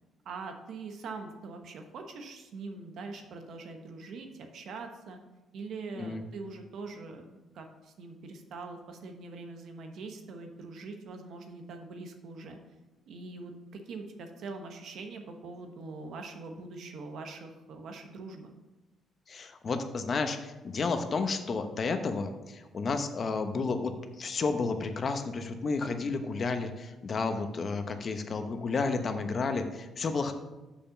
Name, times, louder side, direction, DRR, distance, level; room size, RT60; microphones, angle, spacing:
voice 1, 0.2-5.2 5.5-12.6 13.1-18.5, right 3 dB, 70° right, 5 dB, 1.1 m, -43 dB
voice 2, 19.3-30.3, left 4 dB, 45° left, 8 dB, 0.9 m, -31 dB
6.7 x 5.5 x 5.9 m, 1.1 s
cardioid pair, 90°, 0 cm